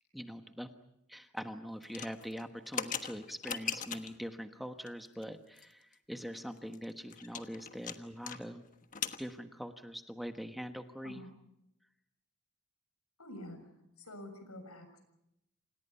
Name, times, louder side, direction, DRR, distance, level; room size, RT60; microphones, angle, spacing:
voice 1, 0.1-0.7 1.1-8.6 9.2-11.2, equal, ahead, 6 dB, 1.2 m, -43 dB
sound 1, 1.8-4.2 4.9-5.2 5.6-5.7 5.9-6.0 6.4-8.4 8.7-9.2, left 7 dB, 35° left, 1.3 m, -40 dB
voice 2, 13.2-13.7 14.0-15.0, left 1 dB, 90° left, 8 dB, 6.7 m, -48 dB
28.5 x 27.5 x 5.6 m, 0.82 s
head